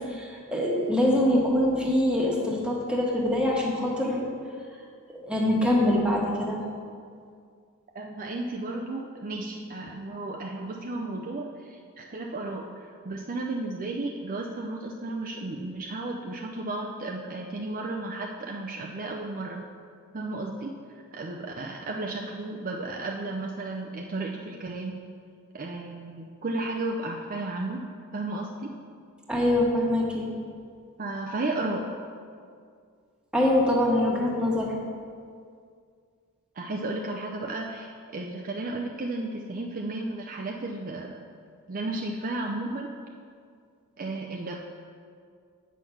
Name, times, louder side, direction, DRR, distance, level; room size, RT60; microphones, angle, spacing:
voice 1, 0.1-4.3 5.2-6.6 29.3-30.3 33.3-34.7, left 1 dB, 5° right, -3 dB, 1.4 m, -24 dB
voice 2, 7.9-12.7 13.0-19.6 20.1-20.7 21.1-25.0 25.5-27.8 28.1-28.7 31.0-31.9 36.6-41.2 41.7-42.9 44.0-44.6, right 2 dB, 40° right, 0 dB, 0.5 m, -33 dB
8.2 x 6.4 x 5.7 m, 2.2 s
head